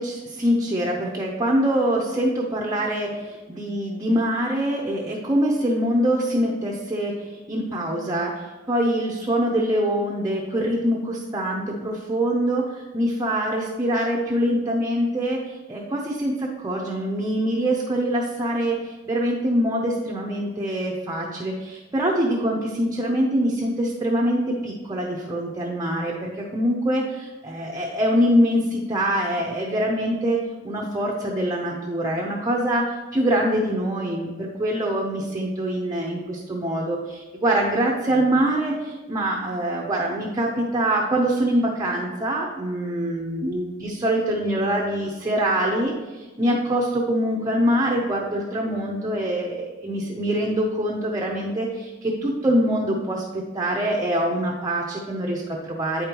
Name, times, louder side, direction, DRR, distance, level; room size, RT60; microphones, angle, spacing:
voice 1, 0.0-30.4 30.6-56.1, right 1 dB, 20° right, -2 dB, 0.6 m, -24 dB
8.4 x 5.2 x 2.9 m, 1.2 s
head